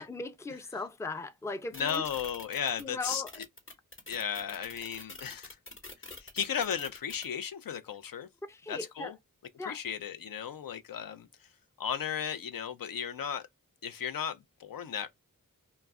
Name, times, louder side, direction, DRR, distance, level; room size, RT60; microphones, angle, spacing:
voice 1, 0.0-2.0 2.8-3.3 8.5-9.1 9.6-9.8, left 3 dB, 10° left, 0.4 m, -38 dB
voice 2, 1.7-3.4 4.1-5.6 6.1-8.3 8.7-9.2 9.6-11.3 11.8-13.4 13.8-15.1, left 8 dB, 80° left, 0.5 m, -35 dB
sound 1, 1.7-7.3, left 2 dB, 35° left, 1.0 m, -46 dB
2.3 x 2.0 x 3.4 m
wide cardioid pair, 45°, 34 cm